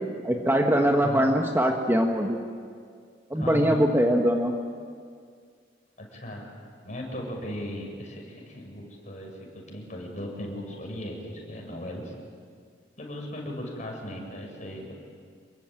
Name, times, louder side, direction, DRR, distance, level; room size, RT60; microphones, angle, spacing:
voice 1, 0.2-2.4 3.3-4.5, equal, 15° right, 2 dB, 1.6 m, -22 dB
voice 2, 3.3-3.8 6.0-6.5 6.8-12.1 13.0-14.9, left 1 dB, 45° left, 0 dB, 7.0 m, -37 dB
27.5 x 23.0 x 9.2 m, 2.1 s
head